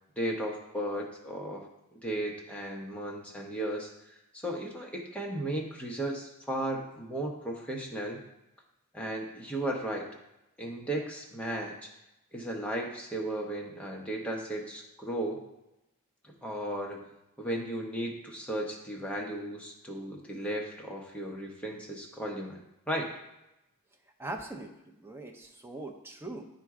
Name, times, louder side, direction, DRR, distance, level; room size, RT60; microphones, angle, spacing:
voice 1, 0.2-8.2 8.9-10.1 10.6-11.9 12.3-15.4 16.2-17.1 17.4-22.6 22.9-23.1, right 1 dB, 5° left, -1 dB, 1.0 m, -35 dB
voice 2, 24.2-26.4, right 2 dB, 10° right, 2 dB, 0.6 m, -41 dB
9.0 x 4.5 x 3.7 m, 0.90 s
head